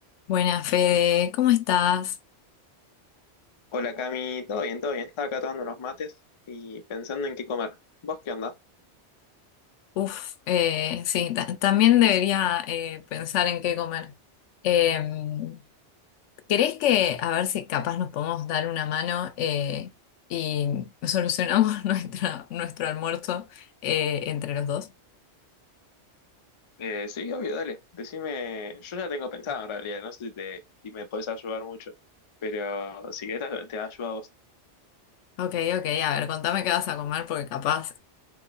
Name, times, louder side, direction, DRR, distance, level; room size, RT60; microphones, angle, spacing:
voice 1, 0.3-2.2 10.0-14.1 14.6-15.6 16.5-19.9 20.3-24.9 35.4-38.0, left 10 dB, 85° left, 0.9 m, -25 dB
voice 2, 3.7-6.1 6.5-7.8 8.0-8.5 26.8-31.9 32.4-34.3, left 4 dB, 40° left, 0.4 m, -33 dB
3.0 x 2.1 x 3.8 m
omnidirectional pair, 1.2 m